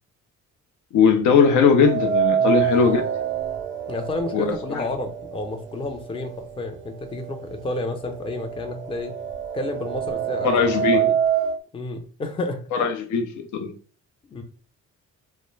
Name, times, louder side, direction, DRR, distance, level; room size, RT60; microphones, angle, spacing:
voice 1, 0.9-3.0 4.3-4.8 10.4-11.1 12.7-13.7, left 5 dB, 75° left, 0.5 m, -19 dB
sound 1, 1.8-5.8 6.2-6.3 7.3-7.4 7.7-11.6, right 8 dB, 40° right, 0.4 m, -26 dB
voice 2, 3.9-9.1 9.5-11.2 11.7-12.8 14.3-14.4, left 2 dB, 20° left, 0.4 m, -31 dB
2.3 x 2.0 x 3.0 m
cardioid pair, 90°, 30 cm